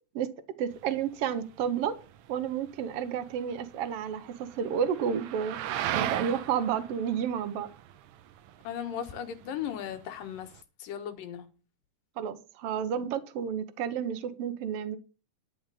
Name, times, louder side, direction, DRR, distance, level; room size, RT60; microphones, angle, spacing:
voice 1, 0.6-1.9 2.3-5.6 5.9-7.7 12.2-15.0, right 8 dB, 60° right, 1.6 m, -31 dB
sound 1, 0.7-10.6, right 12 dB, 80° right, 2.1 m, -39 dB
voice 2, 8.6-10.5 10.8-11.4, left 9 dB, 90° left, 3.0 m, -36 dB
11.5 x 5.0 x 8.3 m
omnidirectional pair, 3.8 m